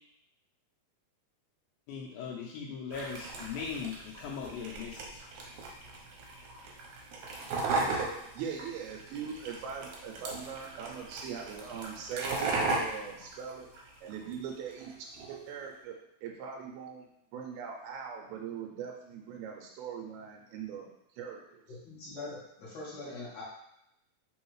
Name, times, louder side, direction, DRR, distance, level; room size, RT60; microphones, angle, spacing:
voice 1, 1.9-5.2, left 6 dB, 80° left, -3 dB, 2.3 m, -39 dB
sound 1, 2.9-14.3 14.7-15.4, right 3 dB, 75° right, 1.9 m, -37 dB
voice 2, 8.3-13.7 14.0-16.0 16.2-20.9 21.2-21.6, right 7 dB, 90° right, 1 dB, 2.5 m, -41 dB
voice 3, 21.7-23.4, left 2 dB, 60° left, -7 dB, 1.8 m, -43 dB
5.4 x 3.2 x 3.1 m, 0.80 s
omnidirectional pair, 4.3 m